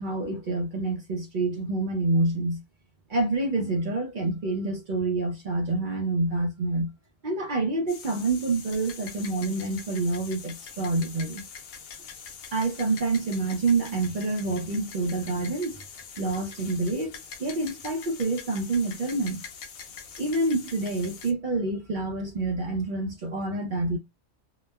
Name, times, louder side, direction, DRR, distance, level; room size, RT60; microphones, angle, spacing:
voice 1, 0.0-2.6 3.1-6.9 7.2-11.4 12.5-15.8 16.2-19.4 20.2-24.0, right 2 dB, 50° right, 0.6 m, -27 dB
sound 1, 7.9-21.3, left 6 dB, 90° left, 1.0 m, -44 dB
3.0 x 2.0 x 2.2 m
omnidirectional pair, 1.4 m